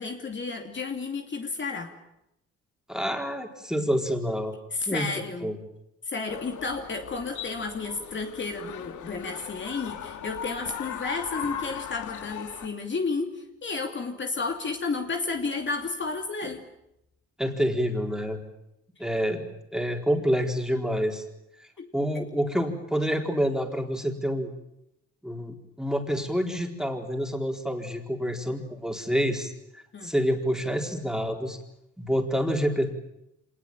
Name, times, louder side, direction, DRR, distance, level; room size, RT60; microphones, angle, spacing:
voice 1, 0.0-1.9 4.7-5.5 6.0-16.7 21.8-21.9 29.9-30.1, left 4 dB, 40° left, 4 dB, 2.8 m, -32 dB
voice 2, 2.9-4.5 4.9-5.1 5.4-5.6 17.4-18.4 19.0-19.4 19.7-21.2 21.9-24.5 25.2-31.6 32.0-32.9, equal, ahead, 2 dB, 4.2 m, -27 dB
sound 1, 6.3-12.7, left 9 dB, 75° left, 2.0 m, -38 dB
25.5 x 19.5 x 9.1 m, 0.85 s
cardioid pair, 90°, 30 cm